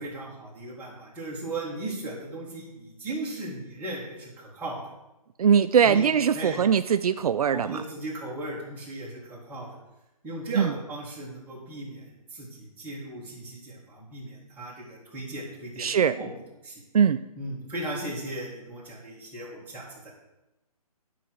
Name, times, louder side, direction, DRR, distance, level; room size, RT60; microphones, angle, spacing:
voice 1, 0.0-4.8 5.8-6.7 7.5-9.8 10.2-16.3 16.6-16.8 17.4-20.1, right 1 dB, 10° right, -7 dB, 2.2 m, -37 dB
voice 2, 5.4-7.8 10.6-10.7 15.8-16.2 16.9-17.2, right 7 dB, 70° right, 12 dB, 0.4 m, -21 dB
9.9 x 4.8 x 6.4 m, 0.95 s
hypercardioid pair, 155°, 19 cm